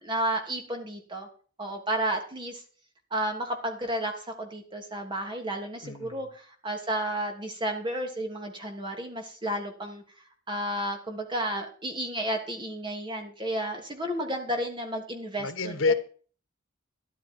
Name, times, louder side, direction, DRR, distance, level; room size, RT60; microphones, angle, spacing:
voice 1, 0.0-1.3 1.6-2.6 3.1-10.0 10.5-15.7, right 1 dB, 25° right, 2.9 m, -32 dB
voice 2, 5.8-6.3 15.4-15.9, left 4 dB, 90° left, 1.3 m, -28 dB
13.0 x 11.5 x 4.6 m
head